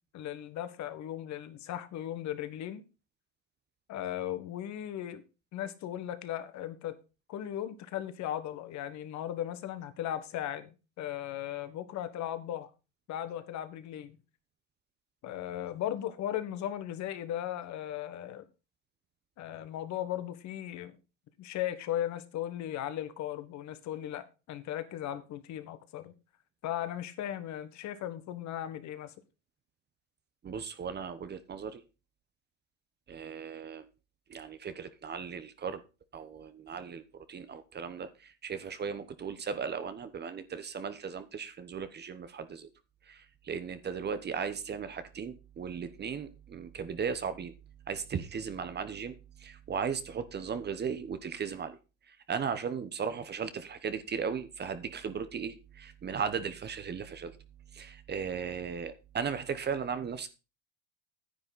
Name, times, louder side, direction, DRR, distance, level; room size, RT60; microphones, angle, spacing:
voice 1, 0.1-2.8 3.9-5.2 5.5-7.0 7.3-12.7 13.1-14.2 15.2-18.5 19.4-21.0 21.4-26.1 26.6-29.1, left 11 dB, 50° left, 1.5 m, -37 dB
voice 2, 30.4-31.8 33.1-33.9 34.3-35.8 36.1-42.7 43.1-47.5 47.9-51.8 52.1-57.4 57.7-60.3, right 6 dB, 30° right, 1.0 m, -37 dB
10.0 x 8.9 x 4.1 m
supercardioid pair, 100°, 37 cm